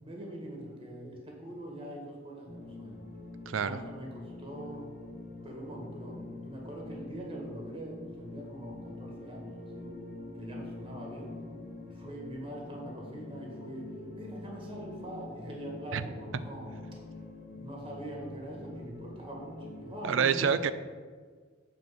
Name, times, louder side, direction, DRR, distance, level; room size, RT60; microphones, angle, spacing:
voice 1, 0.0-3.0 3.6-4.9 5.4-9.9 10.4-11.4 12.0-16.7 17.5-20.6, right 1 dB, 25° right, -1 dB, 1.8 m, -43 dB
sound 1, 2.5-20.0, left 2 dB, 45° left, 1.6 m, -45 dB
voice 2, 3.5-3.8 15.9-16.1 20.0-20.7, right 7 dB, 70° right, 13 dB, 0.4 m, -27 dB
8.1 x 4.4 x 6.3 m, 1.5 s
head